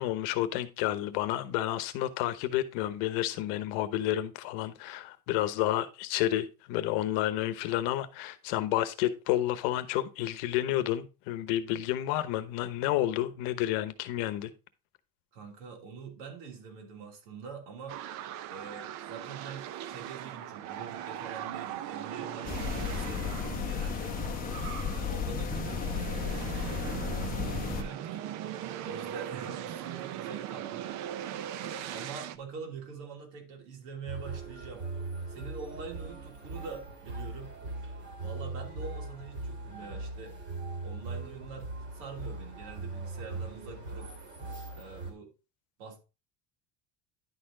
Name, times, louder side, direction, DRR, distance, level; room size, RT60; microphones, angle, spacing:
voice 1, 0.0-14.5, left 13 dB, 65° left, 1.0 m, -30 dB
voice 2, 15.3-24.2 24.9-28.2 28.8-30.9 31.3-34.8 35.3-37.6 38.2-40.4 40.8-44.1 44.8-45.3 45.8-46.0, right 5 dB, 90° right, 3.0 m, -45 dB
sound 1, 17.9-32.4, right 11 dB, 45° right, 0.6 m, -39 dB
sound 2, 22.4-27.8, left 6 dB, 25° left, 0.9 m, -34 dB
sound 3, 34.1-45.1, right 3 dB, 30° right, 2.4 m, -40 dB
10.5 x 4.3 x 3.7 m
cardioid pair, 165°, 38 cm